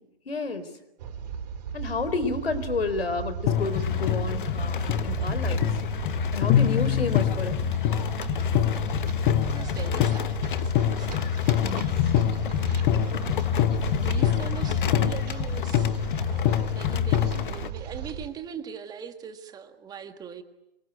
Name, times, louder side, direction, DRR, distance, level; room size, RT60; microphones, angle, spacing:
voice 1, 0.3-0.7 1.7-5.7 6.3-7.6 11.6-11.9, left 3 dB, 80° left, 13 dB, 4.3 m, -30 dB
sound 1, 1.0-18.3, right 8 dB, 45° right, 4.9 m, -35 dB
sound 2, 3.5-17.7, left 9 dB, 55° left, 1.5 m, -37 dB
sound 3, 3.5-17.5, left 11 dB, 20° left, 1.0 m, -25 dB
voice 2, 9.5-11.2 13.8-16.3 16.8-20.4, right 7 dB, 15° right, 8 dB, 1.7 m, -41 dB
26.0 x 24.0 x 9.1 m, 0.89 s
hypercardioid pair, 145°, 30 cm